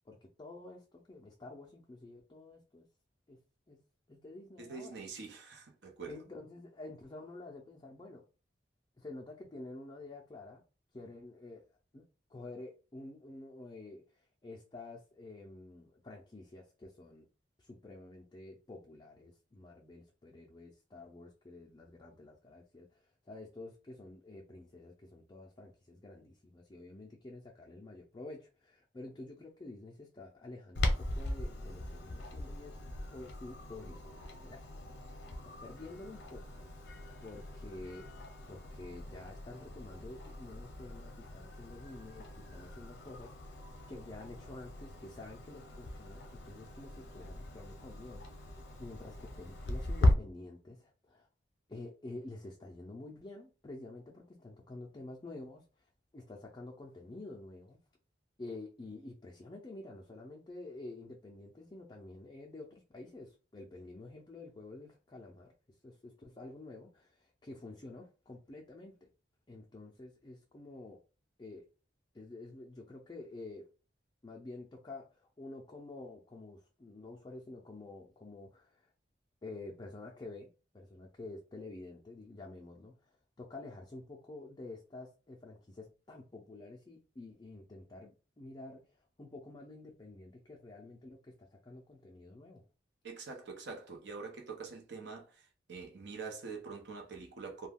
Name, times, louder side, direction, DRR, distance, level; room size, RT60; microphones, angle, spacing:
voice 1, 0.1-2.9 3.3-3.4 3.7-3.8 4.1-5.0 6.1-8.2 9.0-10.6 10.9-11.6 11.9-17.3 17.6-32.8 33.1-34.6 35.0-35.1 35.4-36.4 37.2-38.1 38.5-51.3 51.7-57.8 58.4-65.5 65.8-69.1 69.5-71.0 71.4-71.6 72.1-73.7 74.2-78.9 79.4-92.6, left 2 dB, 25° left, 0.4 m, -49 dB
voice 2, 4.6-6.2 93.0-97.7, right 4 dB, 70° right, 0.6 m, -45 dB
Clock, 30.7-50.1, left 1 dB, 70° left, 0.6 m, -38 dB
2.3 x 2.2 x 3.4 m
head